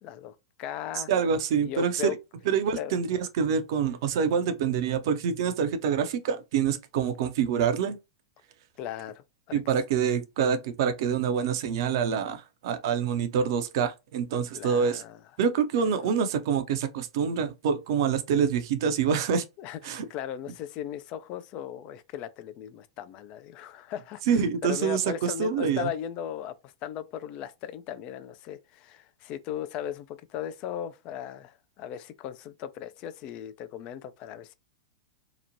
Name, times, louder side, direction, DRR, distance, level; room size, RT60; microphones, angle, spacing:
voice 1, 0.0-1.1 1.6-2.2 2.8-2.9 8.8-9.6 12.7-12.8 14.5-15.2 15.8-16.1 19.6-34.5, left 10 dB, 40° left, 0.3 m, -37 dB
voice 2, 1.1-2.2 2.5-8.0 9.5-15.0 15.4-19.4 19.8-20.1 24.3-25.9, right 7 dB, 55° right, 0.5 m, -26 dB
2.9 x 2.1 x 2.6 m
figure-of-eight pair, 95°, 3 cm